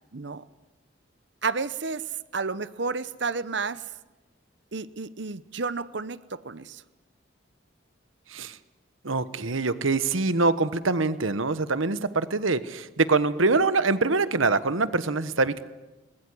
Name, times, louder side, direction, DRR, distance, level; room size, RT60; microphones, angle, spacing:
voice 1, 0.1-0.4 1.4-2.0 2.3-3.8 4.7-6.8, right 4 dB, 65° right, 15 dB, 0.9 m, -31 dB
voice 2, 9.0-15.6, right 3 dB, 90° right, 13 dB, 1.2 m, -24 dB
21.5 x 20.5 x 9.7 m, 1.1 s
head